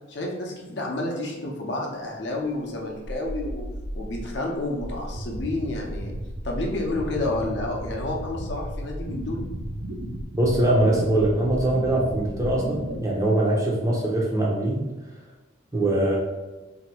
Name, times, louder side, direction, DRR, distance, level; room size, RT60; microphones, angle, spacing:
voice 1, 0.1-3.7 4.0-6.1 6.4-9.4 15.7-16.0, left 2 dB, 60° left, -1 dB, 0.7 m, -30 dB
sound 1, 3.0-13.0, equal, 85° right, 0.6 m, -34 dB
voice 2, 10.3-14.9 15.7-16.2, right 1 dB, 15° right, -3 dB, 0.6 m, -22 dB
2.8 x 2.6 x 4.2 m, 1.2 s
head